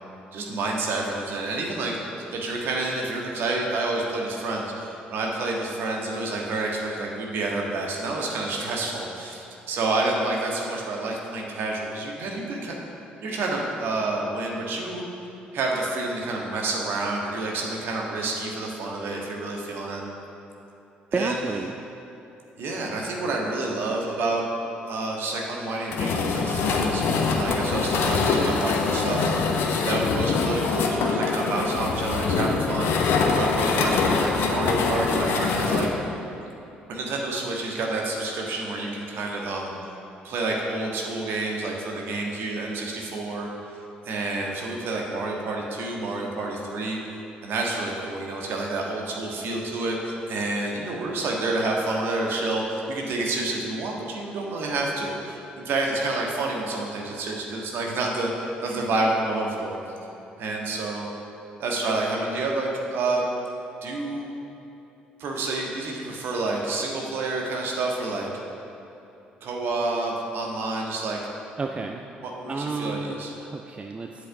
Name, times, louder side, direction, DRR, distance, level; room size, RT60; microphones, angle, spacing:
voice 1, 0.3-2.0 2.3-12.8 13.2-15.0 15.5-20.0 21.1-21.3 22.6-24.4 24.9-29.4 29.8-35.9 36.9-39.7 40.2-43.8 44.0-47.2 47.4-59.8 60.4-61.1 61.6-63.2 63.8-64.2 65.2-68.3 69.4-71.2 72.2-73.3, right 2 dB, 55° right, -1 dB, 1.4 m, -29 dB
voice 2, 21.1-21.7 71.6-72.1 72.5-74.3, right 3 dB, 25° right, 4 dB, 0.5 m, -31 dB
sound 1, 25.9-35.9, left 4 dB, 55° left, 0.9 m, -24 dB
8.1 x 5.4 x 6.9 m, 3.0 s
figure-of-eight pair, 45°, 5 cm